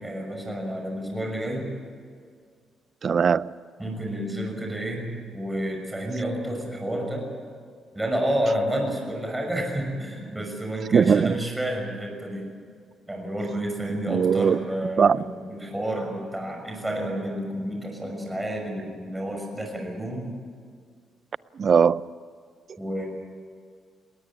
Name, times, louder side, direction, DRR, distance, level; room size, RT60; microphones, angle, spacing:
voice 1, 0.0-1.7 3.8-7.3 7.9-12.5 13.1-20.3 22.8-23.1, right 1 dB, 10° right, 1 dB, 6.3 m, -30 dB
voice 2, 3.0-3.5 10.9-11.4 14.1-14.6 15.0-15.2 21.6-22.0, right 6 dB, 50° right, 18 dB, 0.5 m, -20 dB
20.0 x 19.0 x 9.9 m, 2.1 s
cardioid pair, 90°, 0 cm